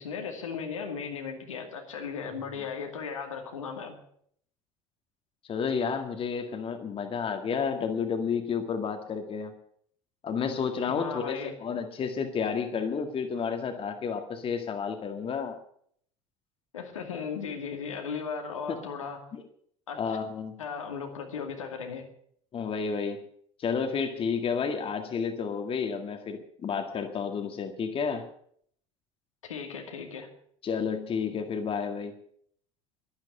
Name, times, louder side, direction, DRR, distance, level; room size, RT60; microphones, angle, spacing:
voice 1, 0.0-4.0 10.9-11.5 16.7-19.3 19.9-20.0 20.6-22.0 29.4-30.3, left 6 dB, 75° left, 3 dB, 2.3 m, -36 dB
voice 2, 5.5-9.5 10.2-15.6 18.7-18.8 19.3-19.4 20.0-20.6 22.5-23.2 23.6-28.2 30.6-32.1, left 6 dB, 35° left, 6 dB, 1.9 m, -31 dB
12.0 x 12.0 x 7.9 m, 0.65 s
figure-of-eight pair, 65°, 17 cm